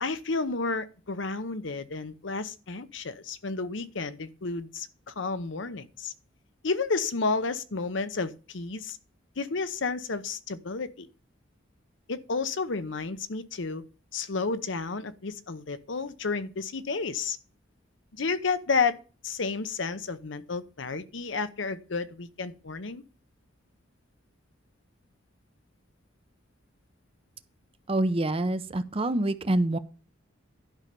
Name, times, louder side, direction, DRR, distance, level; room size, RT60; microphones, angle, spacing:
voice 1, 0.0-6.1 6.6-9.0 9.4-11.1 12.1-13.8 14.1-17.4 18.2-19.0 19.2-23.0, left 4 dB, 65° left, 0.8 m, -31 dB
voice 2, 27.9-29.8, right 1 dB, 30° right, 0.6 m, -26 dB
11.5 x 5.6 x 5.2 m
head